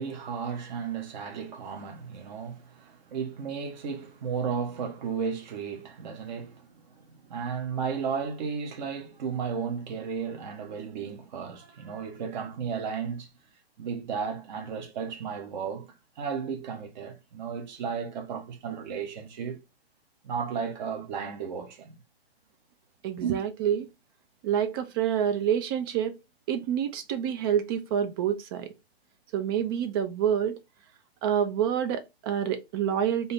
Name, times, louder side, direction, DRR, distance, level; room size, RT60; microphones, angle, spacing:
voice 1, 0.0-13.3 13.8-15.9 16.2-19.6 20.2-21.9 23.2-23.4, right 6 dB, 45° right, 1.3 m, -34 dB
voice 2, 23.0-23.9 24.4-26.2 26.5-28.7 29.3-30.6 31.2-33.3, right 9 dB, 25° right, 0.4 m, -27 dB
3.8 x 2.9 x 3.5 m
figure-of-eight pair, 125°, 31 cm